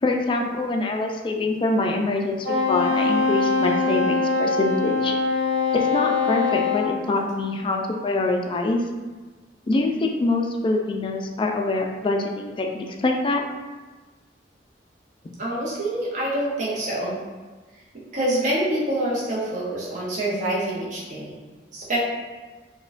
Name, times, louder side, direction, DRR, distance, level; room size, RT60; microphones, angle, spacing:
voice 1, 0.0-5.1 5.7-8.8 9.7-13.4, left 2 dB, 30° left, 2 dB, 0.3 m, -24 dB
Wind instrument woodwind instrument, 2.4-6.9, left 4 dB, 80° right, 1.0 m, -22 dB
voice 2, 15.4-17.1 18.1-21.4 21.7-22.0, right 1 dB, 45° right, -6 dB, 0.6 m, -26 dB
4.2 x 2.2 x 2.5 m, 1.3 s
head